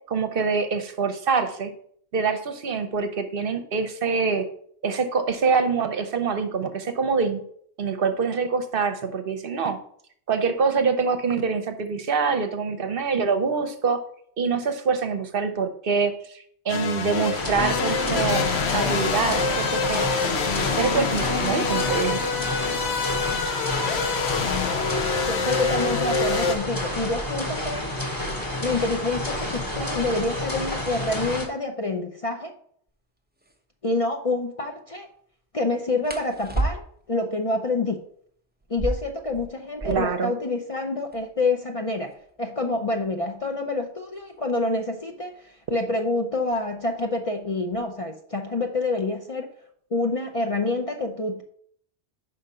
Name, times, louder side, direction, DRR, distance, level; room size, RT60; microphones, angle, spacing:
voice 1, 0.1-1.7 2.1-4.5 4.8-7.4 7.8-9.8 10.3-14.0 14.4-20.0 20.7-22.2 39.8-40.3, right 5 dB, 60° right, 8 dB, 0.9 m, -25 dB
sound 1, 16.7-26.6, left 5 dB, 75° left, 1.0 m, -26 dB
sound 2, 17.3-31.5, left 1 dB, 20° left, 1.1 m, -30 dB
voice 2, 25.2-27.8 28.6-32.5 33.8-35.1 35.5-36.8 37.1-38.0 38.7-49.5 49.9-51.4, left 2 dB, 40° left, 3 dB, 0.5 m, -27 dB
sound 3, 32.9-33.0 33.4-33.6 36.0-37.2 38.6-40.3 40.6-40.7 40.9-41.4 42.1-44.6 45.6-45.9 46.4-46.8 47.2-47.9, right 2 dB, 10° right, 0.7 m, -32 dB
5.3 x 5.0 x 5.5 m, 0.63 s
omnidirectional pair, 1.1 m